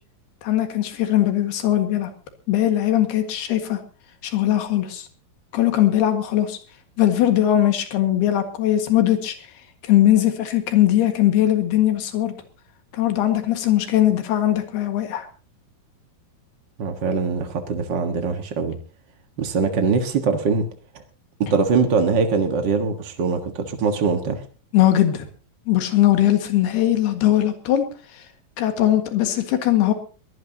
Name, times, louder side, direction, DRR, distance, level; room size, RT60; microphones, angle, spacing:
voice 1, 0.4-2.1 2.5-3.8 4.2-5.1 5.5-6.6 7.0-9.4 9.8-12.3 12.9-15.3 24.7-25.3 25.7-27.9 28.6-29.9, left 12 dB, 90° left, 6 dB, 3.8 m, -20 dB
voice 2, 16.8-18.8 19.4-20.7 21.4-24.4, right 4 dB, 65° right, 5 dB, 1.1 m, -22 dB
22.0 x 17.0 x 2.8 m, 0.37 s
omnidirectional pair, 4.5 m